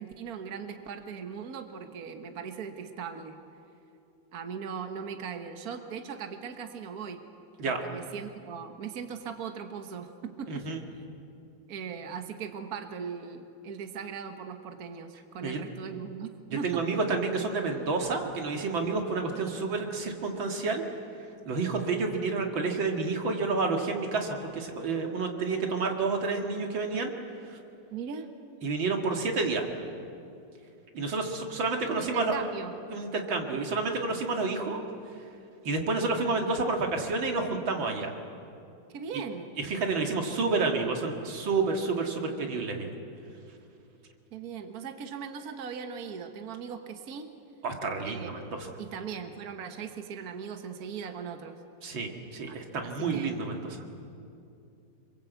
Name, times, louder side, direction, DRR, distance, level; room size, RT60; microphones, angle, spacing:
voice 1, 0.0-3.4 4.3-7.2 7.6-10.7 11.7-16.8 27.9-28.3 31.9-32.7 38.9-39.5 44.3-47.3 48.0-48.5 48.8-51.6 52.5-52.6 52.8-53.4, right 6 dB, 50° right, 6 dB, 1.7 m, -39 dB
voice 2, 10.5-10.8 15.4-15.6 16.6-20.8 21.5-27.1 27.4-27.6 28.6-29.7 30.9-32.3 32.9-34.8 35.6-38.1 39.6-43.0 47.6-48.7 51.8-53.8, right 3 dB, 85° right, 2 dB, 2.9 m, -29 dB
26.5 x 23.0 x 8.2 m, 2.6 s
omnidirectional pair, 2.1 m